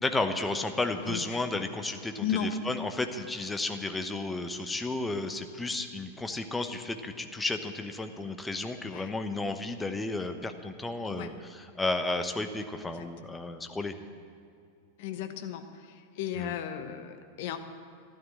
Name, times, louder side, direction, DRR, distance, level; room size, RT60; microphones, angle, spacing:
voice 1, 0.0-13.9 16.3-16.5, left 2 dB, 10° left, 7 dB, 1.0 m, -33 dB
voice 2, 15.0-15.6 16.2-17.6, left 9 dB, 50° left, 8 dB, 1.1 m, -34 dB
12.5 x 11.5 x 7.6 m, 2.4 s
figure-of-eight pair, 90°, 0 cm